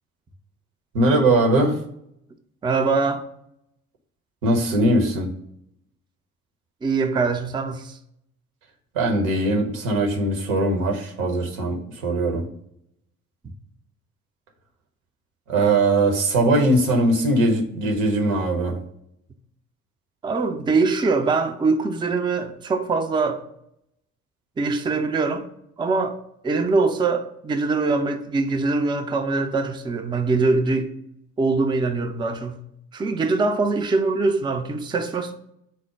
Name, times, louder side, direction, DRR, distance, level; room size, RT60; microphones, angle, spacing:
voice 1, 0.9-1.8 4.4-5.3 8.9-12.5 15.5-18.8, right 2 dB, 75° right, 0.8 m, -20 dB
voice 2, 2.6-3.2 6.8-8.0 20.2-23.4 24.6-25.4 25.8-26.2 26.4-30.9 31.4-32.6 32.9-35.3, right 3 dB, 10° right, 0.4 m, -23 dB
4.2 x 2.1 x 4.6 m
figure-of-eight pair, 45°, 41 cm